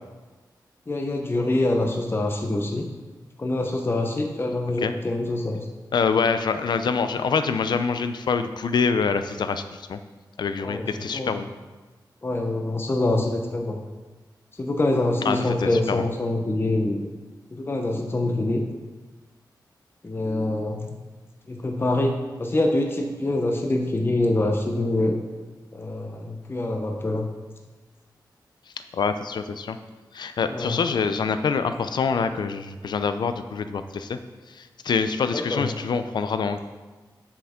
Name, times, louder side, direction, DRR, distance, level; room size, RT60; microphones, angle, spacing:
voice 1, 0.9-2.9 3.4-5.7 10.6-11.4 12.2-13.8 14.6-17.1 17.5-18.6 20.0-21.0 21.5-25.2 25.7-27.3 30.5-30.8 35.3-35.7, left 2 dB, 30° left, 2 dB, 0.7 m, -25 dB
voice 2, 5.9-10.0 10.4-11.5 15.2-16.0 28.9-29.8 30.1-34.2 34.5-36.6, left 5 dB, 75° left, 10 dB, 0.5 m, -25 dB
7.1 x 7.0 x 3.6 m, 1.3 s
cardioid pair, 75°, 8 cm